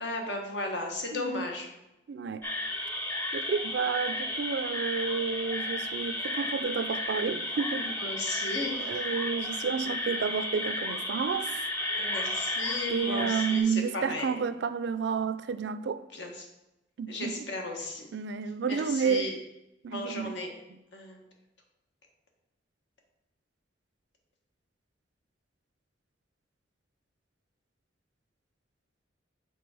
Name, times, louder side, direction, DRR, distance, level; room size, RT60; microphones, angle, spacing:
voice 1, 0.0-1.7 7.7-8.9 11.9-14.4 16.1-16.5 17.1-18.1 18.7-19.3 19.9-20.5 20.9-21.2, left 2 dB, 70° left, 1.2 m, -35 dB
voice 2, 1.1-1.6 2.1-2.4 3.3-7.9 8.8-11.6 12.9-16.0 17.0-17.5 18.1-19.3 19.8-20.4 20.7-20.8, right 6 dB, 65° right, 0.3 m, -31 dB
sound 1, 2.4-13.6, left 1 dB, 10° left, 0.6 m, -33 dB
6.0 x 4.0 x 4.7 m
head